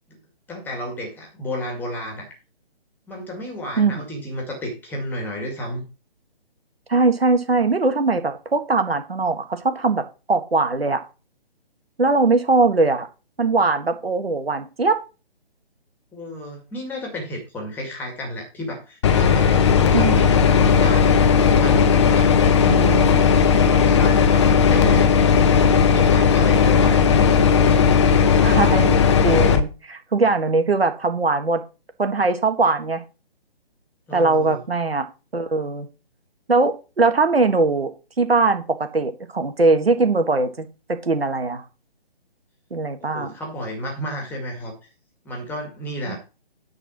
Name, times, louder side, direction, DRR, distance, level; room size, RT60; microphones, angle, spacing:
voice 1, 0.5-2.3 3.1-5.8 16.1-23.3 23.7-25.3 25.9-27.2 34.1-34.6 43.0-44.7 45.2-46.2, equal, 5° left, 2 dB, 2.0 m, -32 dB
voice 2, 6.9-11.0 12.0-13.1 13.4-15.0 19.9-20.2 22.7-23.3 28.3-29.0 29.2-31.6 32.0-33.0 34.1-35.1 35.3-35.9 36.5-41.6 42.7-43.3 46.1-46.2, right 3 dB, 75° right, 7 dB, 1.8 m, -21 dB
sound 1, 19.0-29.6, left 6 dB, 30° left, 0.9 m, -16 dB
9.9 x 4.3 x 6.2 m, 0.31 s
figure-of-eight pair, 145°, 31 cm